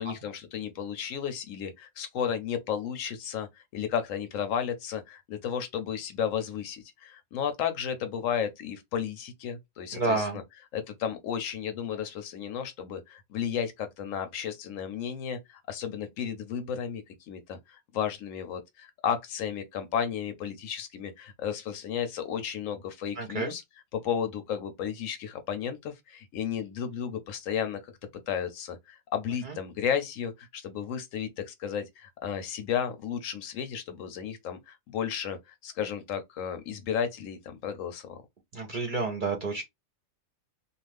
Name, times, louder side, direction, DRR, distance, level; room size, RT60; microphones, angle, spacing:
voice 1, 0.0-10.4 10.7-23.6 23.9-27.8 28.3-38.2, left 8 dB, 75° left, 0.9 m, -33 dB
voice 2, 9.9-10.4 23.2-23.5 29.5-29.6 38.5-39.6, right 3 dB, 50° right, 0.6 m, -30 dB
2.4 x 2.3 x 3.3 m
omnidirectional pair, 1.4 m